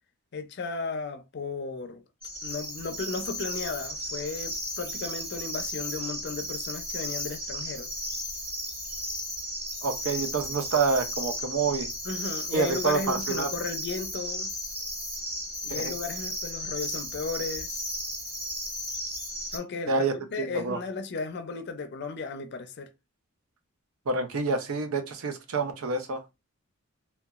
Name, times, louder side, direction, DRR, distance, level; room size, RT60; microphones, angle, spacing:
voice 1, 0.3-2.0 2.4-7.9 12.0-14.5 15.6-17.8 19.5-22.9, left 4 dB, 50° left, 0.4 m, -35 dB
sound 1, 2.2-19.6, equal, 25° right, 1.3 m, -35 dB
voice 2, 9.8-11.9 12.5-13.5 15.7-15.9 19.9-20.8 24.1-26.2, right 4 dB, 75° right, 0.5 m, -28 dB
2.8 x 2.2 x 2.3 m
head